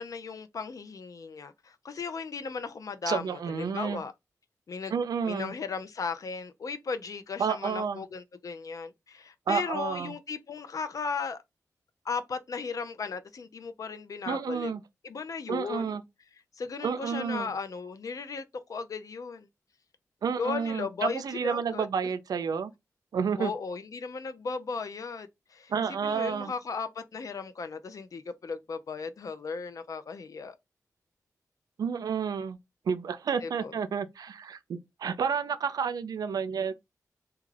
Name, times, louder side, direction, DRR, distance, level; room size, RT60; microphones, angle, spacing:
voice 1, 0.0-4.1 4.7-4.9 5.2-11.4 12.0-14.7 15.0-16.0 16.6-19.5 20.4-21.9 23.4-25.7 26.0-30.5 33.4-33.7, left 5 dB, 60° left, 0.5 m, -36 dB
voice 2, 3.1-4.0 4.9-5.5 7.4-8.0 9.5-10.2 14.3-14.8 15.5-16.0 16.8-17.5 20.2-22.7 23.1-23.5 25.7-26.5 31.8-32.6 32.9-36.7, right 6 dB, 80° right, 0.4 m, -30 dB
2.3 x 2.2 x 3.2 m
cardioid pair, 55°, 6 cm